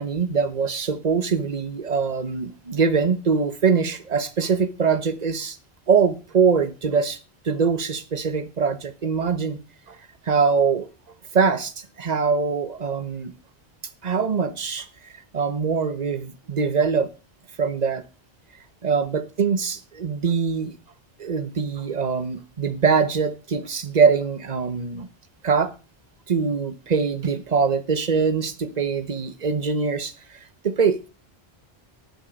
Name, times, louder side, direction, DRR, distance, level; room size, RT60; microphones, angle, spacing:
voice 1, 0.0-5.6 5.9-7.2 7.4-9.6 9.9-10.0 10.2-10.9 11.3-13.3 14.0-14.9 15.3-17.1 17.6-18.0 18.8-20.8 21.2-25.1 25.4-25.7 26.3-30.4 30.6-31.1, right 5 dB, 40° right, 1.2 m, -23 dB
12.0 x 9.3 x 5.3 m
omnidirectional pair, 1.1 m